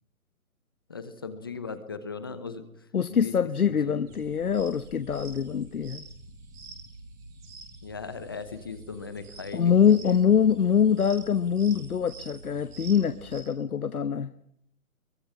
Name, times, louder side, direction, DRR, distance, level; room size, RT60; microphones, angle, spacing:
voice 1, 0.9-2.6 3.1-3.3 3.6-4.0 7.8-9.7, left 5 dB, 15° left, 10 dB, 1.0 m, -38 dB
voice 2, 2.9-6.0 9.5-14.3, left 7 dB, 80° left, 11 dB, 1.3 m, -24 dB
sound 1, 4.1-13.4, right 2 dB, 10° right, 2.3 m, -47 dB
23.5 x 21.0 x 10.0 m, 0.73 s
hypercardioid pair, 175°, 43 cm